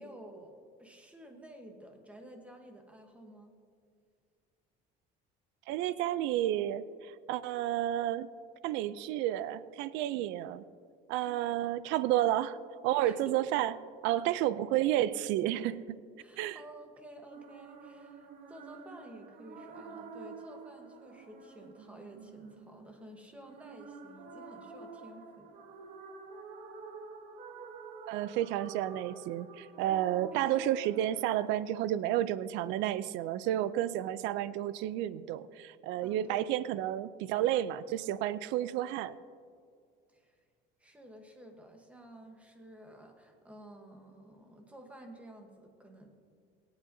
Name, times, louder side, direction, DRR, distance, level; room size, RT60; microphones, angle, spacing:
voice 1, 0.0-3.5 11.2-11.4 13.0-13.4 14.2-14.6 16.2-25.5 30.3-30.7 36.0-36.4 40.1-40.4 40.8-46.1, right 1 dB, 5° right, 3 dB, 1.1 m, -52 dB
voice 2, 5.7-8.3 8.6-10.6 11.1-12.6 12.8-13.7 14.0-16.0 16.4-16.6 28.1-39.2, right 13 dB, 75° right, 16 dB, 0.4 m, -31 dB
sound 1, 17.3-31.2, right 4 dB, 50° right, 1.1 m, -49 dB
23.5 x 8.7 x 2.7 m, 2.2 s
cardioid pair, 175°, 19 cm